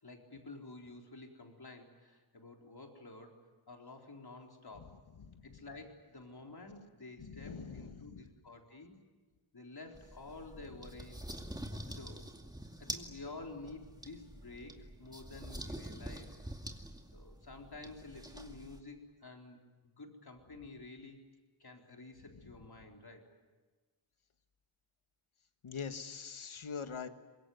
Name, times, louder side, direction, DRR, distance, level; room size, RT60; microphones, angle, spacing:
voice 1, 0.0-4.9 5.4-9.0 9.5-11.2 11.7-12.2 12.8-16.4 17.1-21.2 21.6-23.3, left 2 dB, 50° left, 2 dB, 4.2 m, -51 dB
voice 2, 5.2-5.6 7.2-8.3 25.6-27.1, left 6 dB, 80° left, 9 dB, 1.6 m, -43 dB
sound 1, 9.9-18.8, equal, 10° right, 2.3 m, -46 dB
25.0 x 21.5 x 9.4 m, 1.3 s
wide cardioid pair, 65°, 48 cm